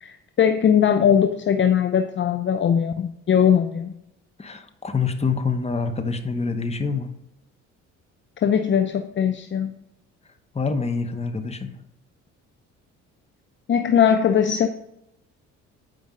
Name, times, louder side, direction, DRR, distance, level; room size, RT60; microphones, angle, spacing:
voice 1, 0.0-3.9 8.4-9.7 13.7-14.7, left 8 dB, 40° left, 8 dB, 0.6 m, -20 dB
voice 2, 4.4-7.1 10.5-11.7, left 4 dB, 20° left, 6 dB, 1.1 m, -26 dB
9.0 x 5.2 x 3.8 m, 0.82 s
supercardioid pair, 75°, 30 cm